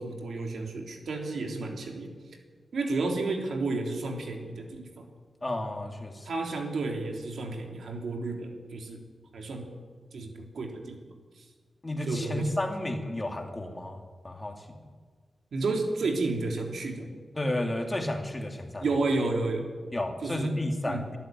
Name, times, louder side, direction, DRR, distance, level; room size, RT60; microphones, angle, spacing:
voice 1, 0.0-2.1 2.7-5.1 6.2-9.1 9.3-9.7 10.1-11.0 12.1-12.5 15.5-17.1 18.8-19.8 20.2-20.6 20.8-21.1, right 3 dB, 80° right, 3 dB, 3.5 m, -31 dB
voice 2, 5.4-6.3 11.8-14.7 17.4-18.8 19.9-21.2, left 1 dB, 20° left, 4 dB, 2.6 m, -32 dB
24.0 x 12.5 x 9.4 m, 1.5 s
wide cardioid pair, 130°, 0 cm